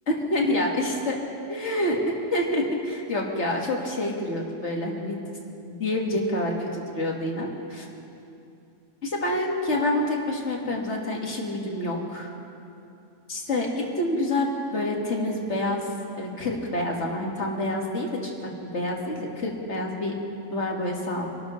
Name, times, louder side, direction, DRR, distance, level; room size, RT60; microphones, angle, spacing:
voice 1, 0.1-1.2 1.5-2.0 2.3-5.2 5.6-7.9 9.0-12.3 13.3-15.9 16.2-18.3 18.6-20.1 20.5-21.3, left 1 dB, 60° left, -1 dB, 2.1 m, -27 dB
25.5 x 12.5 x 3.1 m, 2.7 s
omnidirectional pair, 1.4 m